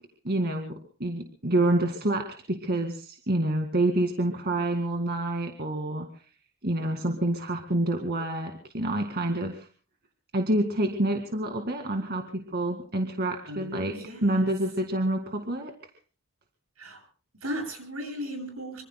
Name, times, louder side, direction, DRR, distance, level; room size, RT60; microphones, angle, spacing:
voice 1, 0.2-0.7 1.0-6.1 6.6-9.7 10.3-13.9 14.2-15.7, right 1 dB, 50° right, 3 dB, 2.1 m, -27 dB
voice 2, 13.4-14.2 16.8-17.0 17.4-18.8, equal, 85° right, 4 dB, 7.9 m, -36 dB
25.5 x 25.5 x 2.2 m, 0.41 s
head